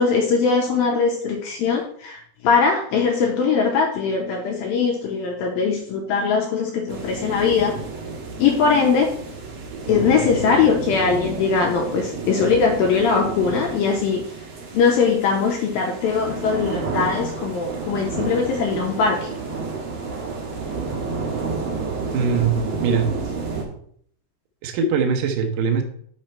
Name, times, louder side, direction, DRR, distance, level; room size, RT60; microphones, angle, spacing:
voice 1, 0.0-7.8 8.4-9.2 9.9-14.2 14.7-19.3, left 5 dB, 80° left, 1 dB, 2.1 m, -21 dB
sound 1, 6.9-23.6, right 4 dB, 60° right, 1.8 m, -30 dB
voice 2, 22.1-23.1 24.6-25.8, right 5 dB, 80° right, 4 dB, 1.9 m, -21 dB
6.4 x 5.9 x 4.4 m, 0.62 s
omnidirectional pair, 5.1 m